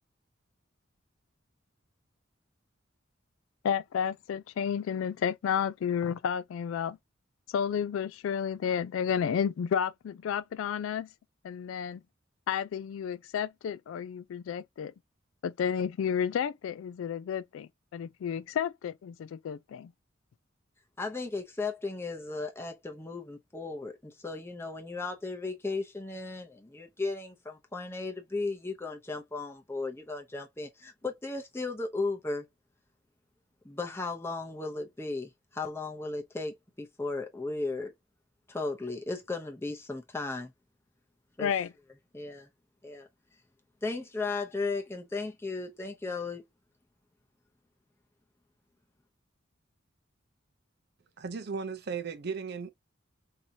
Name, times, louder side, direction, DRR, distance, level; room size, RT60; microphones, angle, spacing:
voice 1, 3.6-7.0 7.5-11.1 11.4-12.0 12.5-14.9 15.4-19.9 41.4-41.7, left 8 dB, 80° left, 0.3 m, -31 dB
voice 2, 21.0-32.5 33.6-37.9 38.5-40.5 41.4-41.5 42.1-42.5 42.8-43.1 43.8-46.4, left 3 dB, 10° left, 0.7 m, -35 dB
voice 3, 51.2-52.7, right 5 dB, 55° right, 0.6 m, -36 dB
4.7 x 2.7 x 2.8 m
head